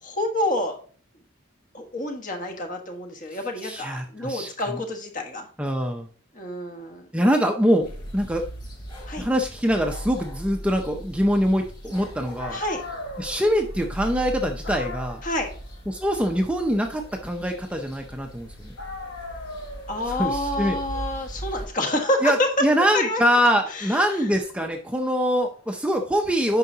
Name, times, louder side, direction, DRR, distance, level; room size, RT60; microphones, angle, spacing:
voice 1, 0.0-0.8 1.7-5.5 6.3-7.1 9.1-9.3 12.5-12.8 15.2-15.5 19.9-22.5 22.9-23.2 23.7-24.0, left 1 dB, 40° left, 4 dB, 1.4 m, -28 dB
voice 2, 3.6-4.8 5.6-6.1 7.1-7.9 8.1-8.5 9.2-12.6 13.2-15.2 15.9-18.7 20.1-20.8 22.2-26.6, equal, 5° right, 3 dB, 0.5 m, -24 dB
sound 1, 7.8-21.7, equal, 20° left, 3.3 m, -39 dB
Dog, 12.4-18.4 18.8-25.6, left 2 dB, 90° left, 1.6 m, -41 dB
9.3 x 5.6 x 2.8 m, 0.43 s
head